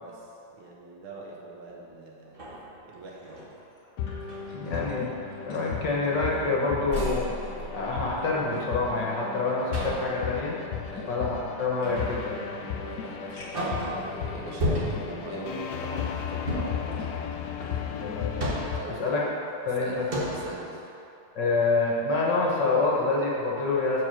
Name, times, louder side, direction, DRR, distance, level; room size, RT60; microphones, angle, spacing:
voice 1, 0.0-3.5 10.9-11.1 12.6-17.4 17.7-18.1 18.7-19.0 19.8-20.0 20.3-20.9, right 3 dB, 90° right, -3 dB, 2.0 m, -42 dB
sound 1, 1.7-1.8 2.3-3.5 4.0-4.4 5.0-5.2 5.6-6.5 6.9-8.4 9.7-10.2 11.8-12.3 12.7-12.8 13.3-14.1 14.6-15.2 16.4-16.9 18.1-18.9 19.6-19.7 20.1-20.6, equal, 35° right, 1.0 m, -33 dB
sound 2, 2.9-6.9 7.3-7.4 7.9-9.9 10.8-12.2 12.8-12.9 13.4-13.8 14.5-14.6 16.9-17.9 18.2-19.1 19.5-19.7, left 2 dB, 35° left, 1.4 m, -50 dB
sound 3, 4.0-18.8, left 8 dB, 85° left, 0.8 m, -35 dB
voice 2, 4.5-5.1 5.5-7.3 7.7-10.5 11.1-12.5 17.9-18.5 19.0-19.2 19.6-20.1 21.3-24.0, left 3 dB, 60° left, -4 dB, 1.6 m, -27 dB
6.2 x 4.9 x 6.1 m, 2.8 s
omnidirectional pair, 2.3 m